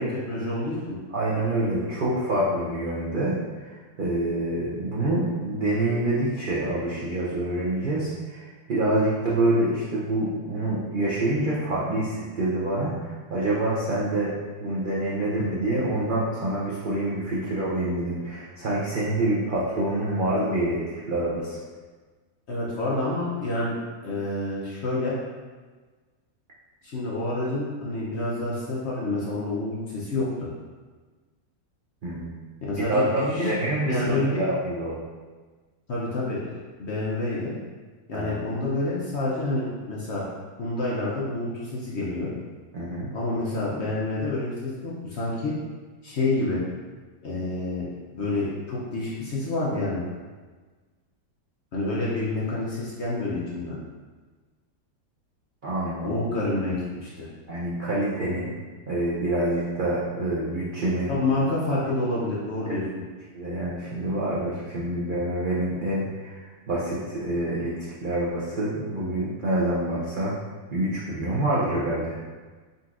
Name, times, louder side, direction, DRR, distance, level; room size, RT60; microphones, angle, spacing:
voice 1, 0.0-1.0 22.5-23.7 24.0-25.1 26.8-30.5 32.6-33.5 33.9-34.4 35.9-36.4 36.8-37.5 38.1-40.3 40.6-42.3 43.1-45.5 46.0-46.6 47.2-47.9 48.1-50.0 51.7-53.8 56.0-57.3 61.1-62.8, left 2 dB, 55° left, -6 dB, 0.8 m, -28 dB
voice 2, 1.1-3.4 4.0-14.3 14.6-21.6 32.0-32.3 32.8-35.0 38.1-38.4 42.7-43.1 55.6-56.2 57.5-58.5 58.9-61.1 62.7-62.8 63.3-70.3 70.7-72.2, right 1 dB, 80° right, -7 dB, 0.4 m, -26 dB
4.4 x 4.0 x 2.5 m, 1.4 s
omnidirectional pair, 1.8 m